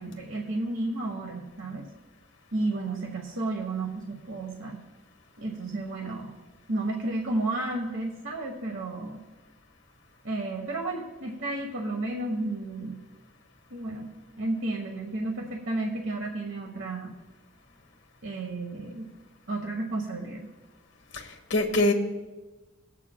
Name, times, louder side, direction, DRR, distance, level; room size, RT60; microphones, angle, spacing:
voice 1, 0.0-1.9 2.5-4.8 5.4-6.3 6.7-9.2 10.2-12.9 13.7-14.1 14.4-17.1 18.2-19.1 19.5-20.4, right 2 dB, 90° right, 1 dB, 1.2 m, -32 dB
voice 2, 21.1-21.9, left 2 dB, 65° left, 4 dB, 1.1 m, -24 dB
21.0 x 8.2 x 2.2 m, 1.1 s
head